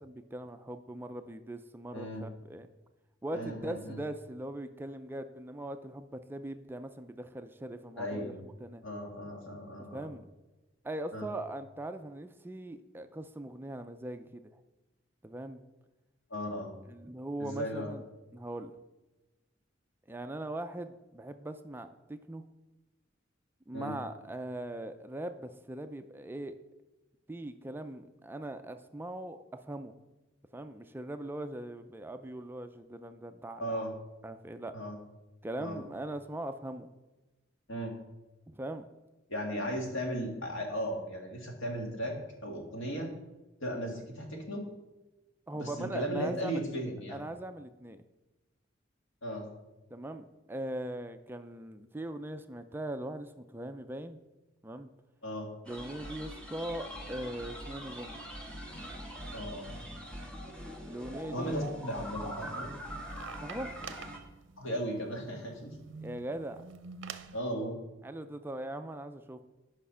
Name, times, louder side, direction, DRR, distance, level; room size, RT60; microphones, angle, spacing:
voice 1, 0.0-2.7 3.2-8.3 8.6-8.8 9.9-10.3 10.8-14.6 15.2-15.6 16.9-18.0 18.3-18.7 20.1-22.4 23.7-26.6 27.3-29.4 29.6-29.9 30.5-33.8 34.2-34.7 35.4-36.9 38.5-38.8 45.5-46.6 47.1-48.0 49.9-54.2 54.6-54.9 55.7-58.2 60.9-61.6 63.4-63.7 66.0-66.7 68.0-69.4, right 1 dB, 10° right, 8 dB, 0.4 m, -40 dB
voice 2, 1.9-2.3 3.3-4.0 8.0-8.4 8.8-10.1 11.1-11.3 16.3-16.7 17.4-17.9 23.7-23.9 33.6-33.9 34.7-35.0 35.6-35.8 37.7-37.9 39.3-42.1 42.4-43.1 43.6-44.7 45.5-47.2 49.2-49.5 55.2-55.5 59.3-59.8 61.3-62.8 64.6-65.8 67.3-67.8, equal, 80° left, 1 dB, 2.0 m, -36 dB
sound 1, 55.6-64.2, equal, 5° left, 1.3 m, -43 dB
sound 2, 62.3-67.4, right 5 dB, 75° right, 0.6 m, -48 dB
8.6 x 5.7 x 5.5 m, 1.1 s
head